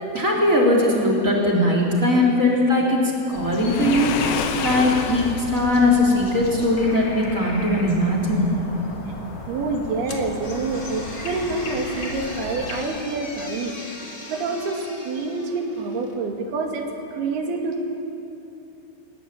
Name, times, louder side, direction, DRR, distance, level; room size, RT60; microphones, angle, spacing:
voice 1, 0.1-3.0 3.3-4.3 4.6-8.5, left 1 dB, 20° right, -1 dB, 3.6 m, -20 dB
sound 1, 3.3-12.8, left 2 dB, 40° left, 3.4 m, -35 dB
Waves surf, 3.5-5.6, left 8 dB, 75° left, 2.8 m, -28 dB
voice 2, 9.5-17.8, right 3 dB, 75° right, 2 dB, 4.2 m, -27 dB
sound 2, 10.0-16.2, left 2 dB, 25° left, 1.1 m, -39 dB
20.5 x 20.5 x 9.1 m, 2.8 s
omnidirectional pair, 4.6 m